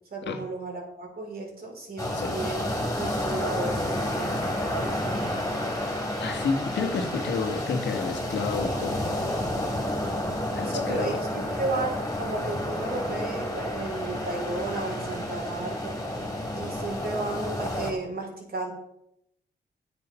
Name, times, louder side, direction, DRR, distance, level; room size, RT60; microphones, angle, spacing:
voice 1, 0.1-2.7 3.0-5.7 10.5-16.0 16.5-18.7, right 2 dB, 60° right, 3.9 m, -34 dB
sound 1, 2.0-17.9, left 1 dB, 15° left, 3.0 m, -30 dB
voice 2, 6.2-9.3 10.5-11.2, left 5 dB, 80° left, 1.5 m, -30 dB
9.0 x 7.7 x 5.6 m
cardioid pair, 75°, 18 cm